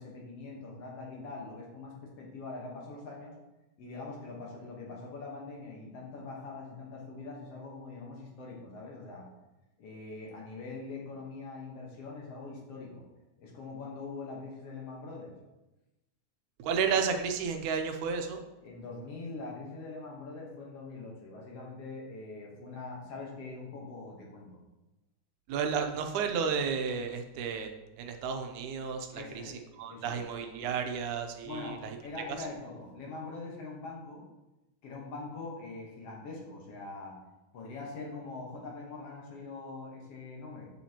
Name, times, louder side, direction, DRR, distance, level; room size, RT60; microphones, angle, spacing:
voice 1, 0.0-3.3 3.8-9.3 9.8-13.0 13.4-15.3 18.6-24.6 29.1-29.6 29.9-30.2 31.4-34.2 34.8-37.2 37.5-40.7, left 3 dB, 60° left, -2 dB, 2.0 m, -43 dB
voice 2, 16.6-18.4 25.5-27.7 28.0-32.0, right 6 dB, 80° right, 5 dB, 2.1 m, -32 dB
7.8 x 7.2 x 2.9 m, 1.0 s
omnidirectional pair, 3.5 m